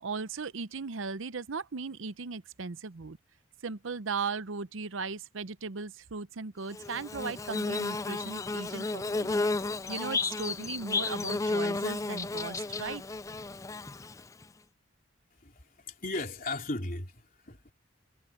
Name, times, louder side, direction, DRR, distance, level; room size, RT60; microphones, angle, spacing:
voice 1, 0.0-3.2 3.6-9.4 9.9-13.0, right 4 dB, 80° right, 0.7 m, -37 dB
Bird / Buzz, 6.7-14.4, left 3 dB, 15° left, 0.3 m, -33 dB
voice 2, 15.4-17.7, left 2 dB, 45° left, 3.6 m, -37 dB
head